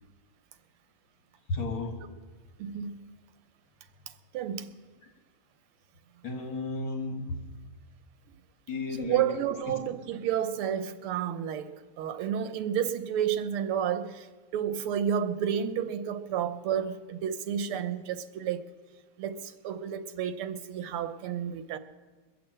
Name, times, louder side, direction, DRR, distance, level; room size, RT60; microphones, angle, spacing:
voice 1, 1.5-2.0 6.2-7.3 8.7-9.3, left 3 dB, 65° left, 3.0 m, -33 dB
voice 2, 2.6-3.0 4.3-4.7 9.0-14.3 14.5-18.6 19.2-21.8, right 9 dB, 85° right, 1.7 m, -31 dB
22.0 x 7.8 x 7.6 m
omnidirectional pair, 2.3 m